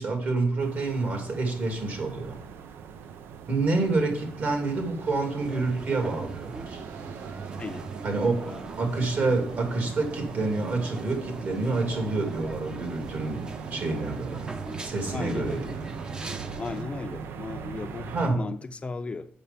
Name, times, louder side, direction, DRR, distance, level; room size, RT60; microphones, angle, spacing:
voice 1, 0.0-2.4 3.5-6.8 8.0-8.4 8.8-14.5 14.8-15.8 18.0-18.5, right 3 dB, 60° right, 2.8 m, -28 dB
sound 1, 0.6-18.3, right 7 dB, 90° right, 0.5 m, -41 dB
sound 2, 5.4-16.8, right 2 dB, 25° right, 0.7 m, -41 dB
voice 2, 7.6-7.9 8.4-8.6 15.1-15.8 16.6-19.3, left 4 dB, 30° left, 0.5 m, -36 dB
6.9 x 5.5 x 7.2 m
cardioid pair, 100°, 4 cm